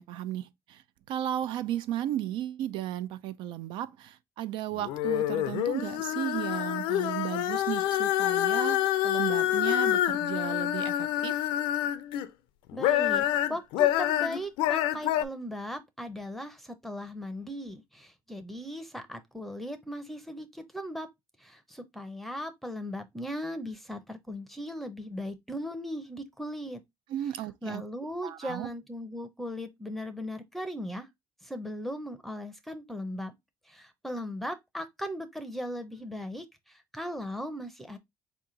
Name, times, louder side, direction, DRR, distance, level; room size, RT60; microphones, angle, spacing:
voice 1, 0.0-11.5 27.1-27.8 28.2-28.7, right 12 dB, 75° right, 0.5 m, -35 dB
sound 1, 4.8-12.3 12.7-15.2, left 13 dB, 90° left, 0.5 m, -27 dB
voice 2, 12.7-21.1 21.4-26.8 27.6-31.1 31.4-33.3 33.7-38.0, equal, ahead, 0.6 m, -38 dB
4.5 x 2.9 x 3.7 m
cardioid pair, 110°, 8 cm